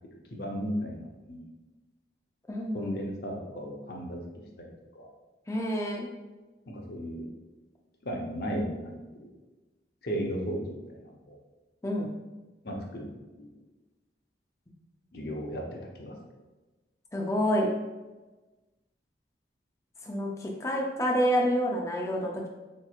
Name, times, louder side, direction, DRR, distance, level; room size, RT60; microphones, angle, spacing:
voice 1, 0.3-1.4 2.7-4.2 4.6-4.7 4.9-5.1 6.7-7.2 8.0-8.9 9.2-9.3 10.0-11.4 12.6-13.1 13.3-13.5 15.1-15.6 16.0-16.1, equal, 60° left, 0 dB, 0.7 m, -35 dB
voice 2, 2.5-3.0 5.5-6.1 11.8-12.1 17.1-17.7 20.0-22.5, equal, 15° left, -1 dB, 0.5 m, -28 dB
4.4 x 3.0 x 2.4 m, 1.2 s
head